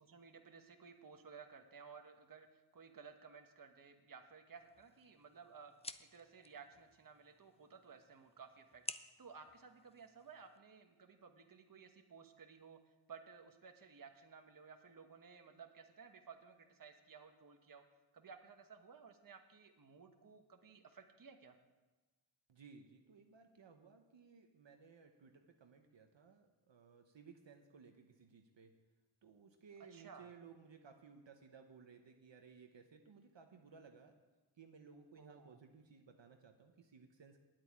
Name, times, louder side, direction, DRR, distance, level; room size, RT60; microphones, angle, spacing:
voice 1, 0.0-5.7 6.0-12.8 13.1-17.8 18.1-21.6 29.9-30.3 35.2-35.6, right 5 dB, 40° right, 5 dB, 1.1 m, -57 dB
sound 1, 4.6-10.6, left 3 dB, 15° left, 0.3 m, -54 dB
voice 2, 22.5-28.7 29.2-34.1 34.6-37.4, right 5 dB, 60° right, 5 dB, 1.0 m, -60 dB
9.5 x 8.4 x 9.4 m, 1.2 s
wide cardioid pair, 130°, 49 cm